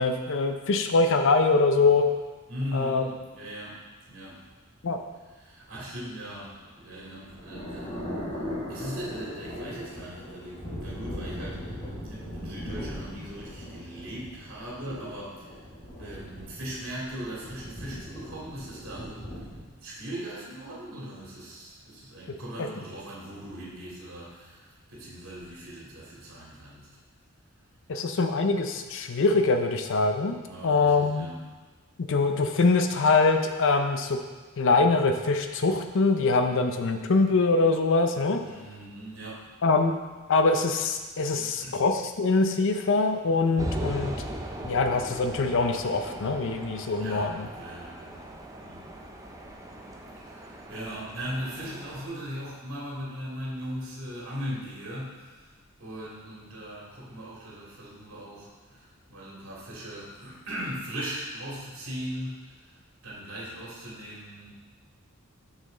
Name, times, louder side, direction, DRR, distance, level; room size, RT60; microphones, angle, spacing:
voice 1, 0.0-2.0 2.7-3.0 4.8-5.0 27.9-31.3 32.1-34.2 34.6-38.4 39.6-40.0 40.3-44.1 44.6-47.5, left 3 dB, 60° left, 6 dB, 0.5 m, -23 dB
voice 2, 2.5-4.5 5.3-8.4 8.7-15.6 16.0-26.9 30.4-31.4 38.4-39.5 41.3-41.8 47.0-48.9 50.2-55.5 55.8-64.5, equal, 65° right, -6 dB, 2.5 m, -39 dB
sound 1, 6.5-19.6, equal, 25° left, 1.5 m, -39 dB
sound 2, 43.6-52.0, right 1 dB, 15° right, 0.6 m, -38 dB
6.6 x 6.1 x 3.8 m, 1.3 s
head